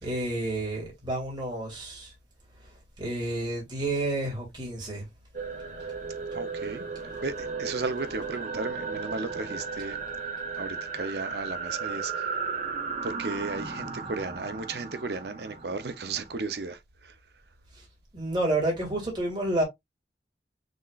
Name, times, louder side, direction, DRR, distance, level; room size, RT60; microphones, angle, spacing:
voice 1, 0.0-2.1 3.0-5.0 18.1-19.6, right 1 dB, 25° right, 2.5 m, -30 dB
sound 1, 5.3-16.7, right 5 dB, 45° right, 1.6 m, -35 dB
voice 2, 6.3-6.8 7.2-10.0 10.6-10.7 11.0-12.1 13.0-16.8, right 3 dB, 65° right, 0.7 m, -34 dB
6.4 x 3.1 x 2.4 m
head